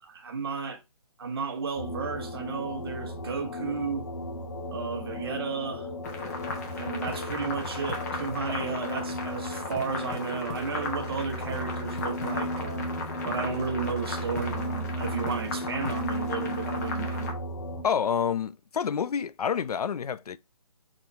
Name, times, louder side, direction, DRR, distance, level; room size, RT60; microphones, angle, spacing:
voice 1, 0.1-0.8 1.2-4.0 4.7-5.9 6.7-12.9 13.2-17.3, right 5 dB, 40° right, 1.0 m, -33 dB
sound 1, 1.8-17.8, equal, 55° left, 1.2 m, -35 dB
sound 2, 6.0-17.3, left 3 dB, 25° left, 1.0 m, -37 dB
voice 2, 17.8-20.4, left 7 dB, 85° left, 0.4 m, -28 dB
4.0 x 3.1 x 4.1 m
hypercardioid pair, 165°, 19 cm